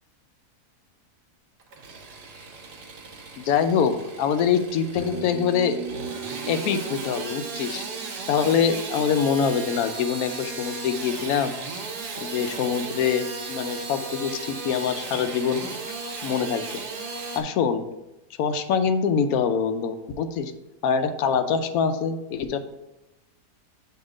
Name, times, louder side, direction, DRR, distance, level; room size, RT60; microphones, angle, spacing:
Engine starting / Sawing, 1.6-17.4, right 4 dB, 90° right, 1.5 m, -36 dB
voice 1, 3.4-5.8 6.5-7.8 8.3-11.8 12.2-15.7 16.2-16.7 17.4-17.8 18.4-20.5 20.8-22.6, left 7 dB, 70° left, 8 dB, 1.0 m, -24 dB
sound 1, 5.0-9.6, right 3 dB, 45° left, 1.0 m, -38 dB
8.0 x 2.8 x 4.9 m, 0.94 s
omnidirectional pair, 1.7 m